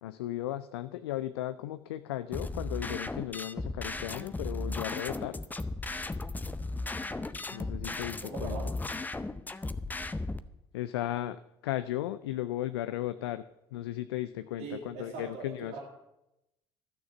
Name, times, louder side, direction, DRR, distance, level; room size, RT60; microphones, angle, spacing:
voice 1, 0.0-5.4 7.5-8.6 10.7-15.8, left 14 dB, 80° left, 13 dB, 0.4 m, -36 dB
sound 1, 2.3-10.4, left 2 dB, 15° left, 0.6 m, -36 dB
voice 2, 8.2-8.7 14.6-15.8, right 4 dB, 65° right, -2 dB, 2.3 m, -40 dB
12.5 x 6.7 x 7.0 m, 0.88 s
hypercardioid pair, 55°, 13 cm